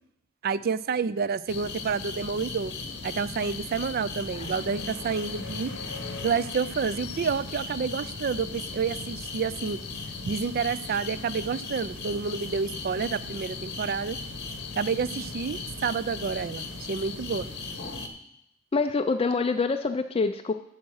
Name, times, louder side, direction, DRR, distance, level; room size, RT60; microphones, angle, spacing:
voice 1, 0.4-2.7 3.0-5.7 6.2-9.8 10.2-14.2 14.8-17.5, right 5 dB, 45° right, 16 dB, 0.4 m, -29 dB
sound 1, 1.5-18.1, left 3 dB, 50° left, 1.1 m, -37 dB
voice 2, 18.7-20.5, left 4 dB, 25° left, 8 dB, 0.4 m, -25 dB
8.4 x 7.3 x 6.3 m, 0.78 s
head